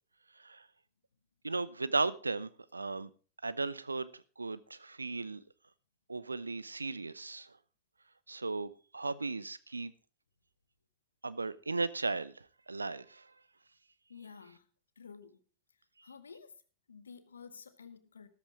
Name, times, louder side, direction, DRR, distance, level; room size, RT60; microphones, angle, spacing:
voice 1, 1.4-3.1 3.4-4.1 4.4-5.4 6.1-7.5 8.3-9.9 11.2-13.3, right 3 dB, 80° right, 16 dB, 0.8 m, -36 dB
voice 2, 14.1-14.7 14.9-15.4 16.0-16.5 16.9-18.3, left 6 dB, 75° left, 10 dB, 1.5 m, -51 dB
14.0 x 13.0 x 3.6 m, 0.36 s
figure-of-eight pair, 90°, 0 cm